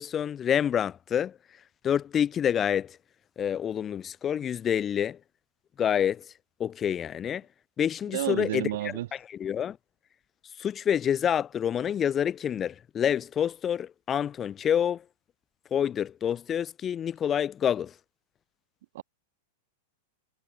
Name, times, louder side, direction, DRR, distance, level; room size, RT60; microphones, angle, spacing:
voice 1, 0.0-1.4 1.8-3.0 3.4-5.2 5.8-6.3 6.6-7.4 7.8-9.8 10.6-15.0 15.7-17.9, left 9 dB, 25° left, 0.9 m, -27 dB
voice 2, 8.1-9.1 18.9-19.0, right 15 dB, 70° right, 1.0 m, -30 dB
supercardioid pair, 140°, 0 cm